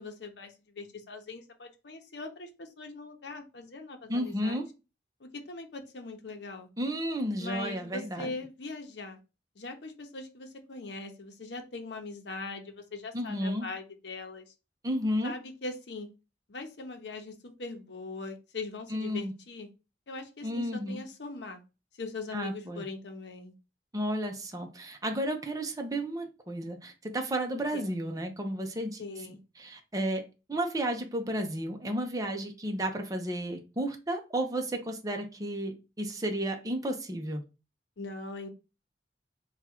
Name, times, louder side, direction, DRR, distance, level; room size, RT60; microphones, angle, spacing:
voice 1, 0.0-4.6 5.2-6.7 7.4-9.2 9.6-14.5 15.2-16.1 16.5-19.7 20.1-21.6 22.0-23.5 27.5-27.9 29.0-29.4 38.0-38.5, left 3 dB, 75° left, 0.8 m, -41 dB
voice 2, 4.1-4.7 6.8-8.3 13.1-13.7 14.8-15.3 18.9-19.3 20.4-21.0 22.3-22.8 23.9-29.0 29.6-30.2 30.5-37.4, right 1 dB, 20° right, 0.7 m, -32 dB
3.6 x 2.4 x 4.3 m
head